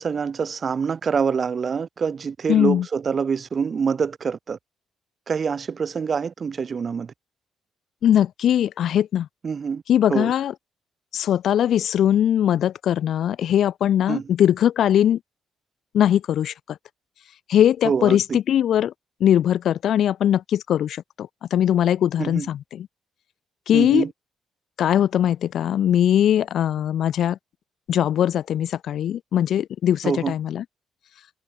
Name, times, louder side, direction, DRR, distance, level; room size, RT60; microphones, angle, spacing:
voice 1, 0.0-4.6 5.3-7.1 9.4-9.8 10.1-10.3 14.1-14.2 17.8-18.4 22.2-22.5 23.7-24.1 30.0-30.3, right 6 dB, 45° right, 1.6 m, -25 dB
voice 2, 2.5-2.8 8.0-9.3 9.9-10.5 11.1-15.2 15.9-16.8 17.5-18.9 19.2-22.9 23.7-24.0 24.8-27.4 27.9-30.6, left 10 dB, 70° left, 1.3 m, -20 dB
cardioid pair, 90°, 0 cm